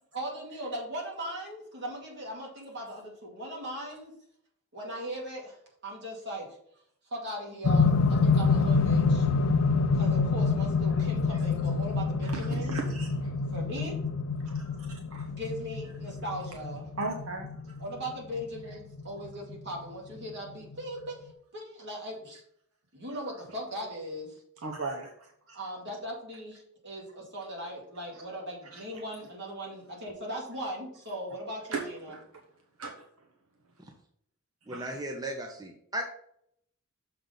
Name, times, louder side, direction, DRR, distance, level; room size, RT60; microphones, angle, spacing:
voice 1, 0.1-4.1 4.7-6.6 7.0-9.3 9.9-12.8 13.5-14.0 15.3-16.9 17.8-22.4 22.9-24.4 25.5-32.2, equal, 55° right, -1 dB, 2.2 m, -39 dB
sound 1, 7.6-19.8 20.7-20.8, left 4 dB, 75° left, 0.4 m, -27 dB
voice 2, 12.3-13.3 14.4-14.7 15.1-15.3 17.0-17.7 24.6-25.1 25.5-25.6 28.7-28.8 31.7-32.2 32.8-33.0 34.7-35.0, right 3 dB, 70° right, 3 dB, 0.8 m, -37 dB
voice 3, 34.7-36.0, right 1 dB, 15° right, 2 dB, 0.7 m, -36 dB
6.6 x 3.9 x 5.6 m, 0.69 s
head